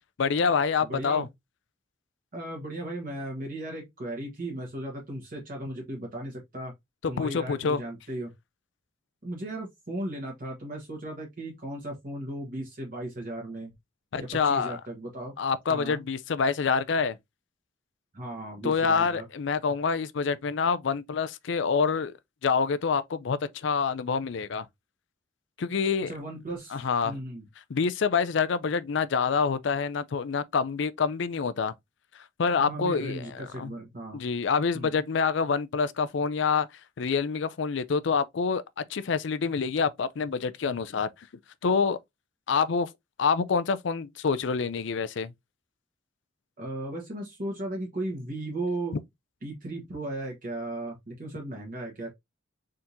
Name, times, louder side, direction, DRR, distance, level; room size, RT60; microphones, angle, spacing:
voice 1, 0.2-1.3 7.2-7.8 14.1-14.8 15.4-17.2 18.6-22.1 22.4-24.7 25.6-26.1 26.7-27.2 27.7-31.7 32.4-33.7 34.1-36.7 37.0-38.6 38.9-41.3 41.6-42.0 42.5-42.9 43.2-45.3 48.9-49.0, left 5 dB, 65° left, 0.4 m, -26 dB
voice 2, 0.8-1.2 2.3-6.7 7.1-8.3 9.2-13.7 14.2-15.3 15.7-16.0 18.1-19.2 26.0-27.5 32.6-34.2 34.7-34.9 46.6-49.0 49.4-52.1, right 1 dB, 45° right, 1.4 m, -36 dB
4.4 x 3.7 x 2.6 m
head